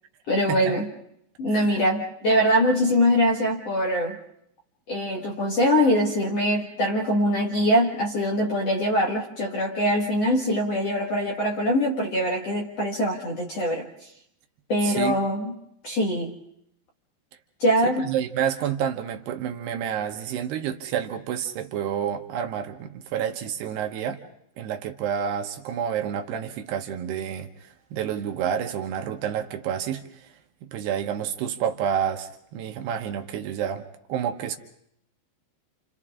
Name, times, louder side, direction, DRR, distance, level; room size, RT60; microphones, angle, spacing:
voice 1, 0.3-0.9 1.4-4.2 4.9-13.9 14.7-15.5 15.8-16.3 17.6-18.1, equal, 50° left, 0 dB, 2.0 m, -23 dB
voice 2, 14.8-15.2 17.8-24.2 24.6-30.0 30.7-33.8 34.1-34.6, right 9 dB, 75° right, 5 dB, 2.9 m, -29 dB
29.5 x 28.5 x 3.7 m, 0.74 s
omnidirectional pair, 5.2 m